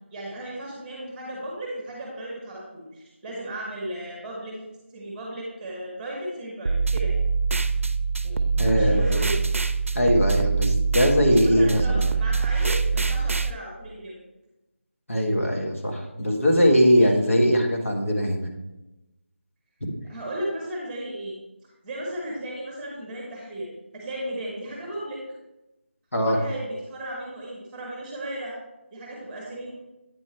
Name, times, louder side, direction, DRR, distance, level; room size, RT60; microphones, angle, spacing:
voice 1, 0.1-4.6 4.9-7.2 8.2-9.4 11.3-14.2 17.0-17.1 20.0-21.4 21.8-25.2 26.2-28.6 28.9-29.7, right 1 dB, 10° right, -3 dB, 1.1 m, -35 dB
sound 1, 6.7-13.5, right 4 dB, 85° right, 0.5 m, -24 dB
voice 2, 8.6-9.3 9.9-12.1 15.1-18.5 19.8-19.9 26.1-26.4, equal, 90° left, 1 dB, 1.5 m, -21 dB
8.7 x 4.4 x 4.3 m, 1.0 s
figure-of-eight pair, 170°, 7 cm